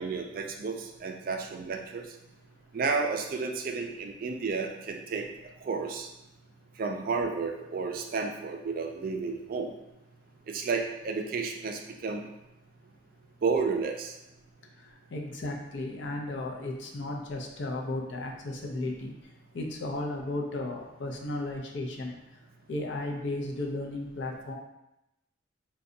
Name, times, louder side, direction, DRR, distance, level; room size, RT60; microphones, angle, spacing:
voice 1, 0.0-2.0 2.7-5.2 5.7-6.1 6.8-9.7 10.5-12.2 13.4-14.1, right 4 dB, 45° right, 3 dB, 0.3 m, -31 dB
voice 2, 14.8-22.2 22.7-24.5, left 2 dB, 65° left, 1 dB, 0.5 m, -35 dB
2.5 x 2.2 x 3.7 m, 0.89 s
head